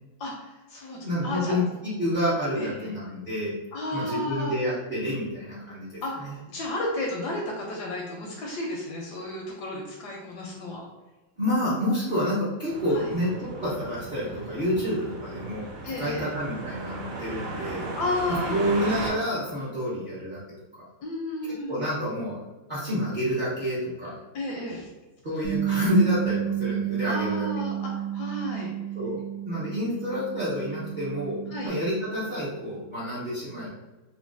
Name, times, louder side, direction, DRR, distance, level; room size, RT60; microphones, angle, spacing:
voice 1, 0.2-1.6 2.6-2.9 3.7-4.6 6.0-10.8 12.9-13.1 15.8-16.3 18.0-18.7 21.0-21.9 24.3-24.9 27.1-28.7 31.5-31.7, left 1 dB, 75° left, -1 dB, 1.0 m, -33 dB
voice 2, 1.0-3.5 3.9-6.3 11.4-15.6 16.0-17.8 18.5-20.4 20.7-20.9 21.7-22.4 22.7-24.1 25.2-27.5 28.9-31.4 31.6-33.7, equal, 50° right, -9 dB, 0.5 m, -28 dB
sound 1, 12.7-19.1, right 2 dB, 85° right, 1.9 m, -36 dB
Bass guitar, 25.4-31.7, right 11 dB, 65° right, 1.0 m, -31 dB
3.8 x 2.1 x 2.5 m, 1.1 s
omnidirectional pair, 2.1 m